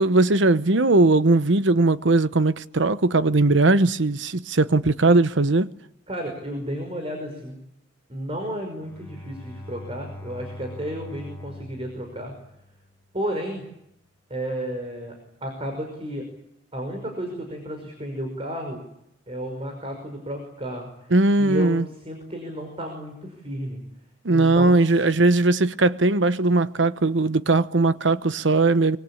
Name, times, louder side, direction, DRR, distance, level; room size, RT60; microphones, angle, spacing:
voice 1, 0.0-5.7 21.1-21.8 24.2-29.0, right 2 dB, 80° right, 1.0 m, -19 dB
voice 2, 6.1-7.6 8.1-12.3 13.1-13.6 14.3-15.1 15.4-16.3 16.7-18.8 19.3-21.1 21.4-23.8 24.3-24.9, equal, 30° right, 5.6 m, -32 dB
Bowed string instrument, 8.8-13.1, left 1 dB, 10° left, 4.8 m, -42 dB
25.0 x 24.5 x 8.6 m
head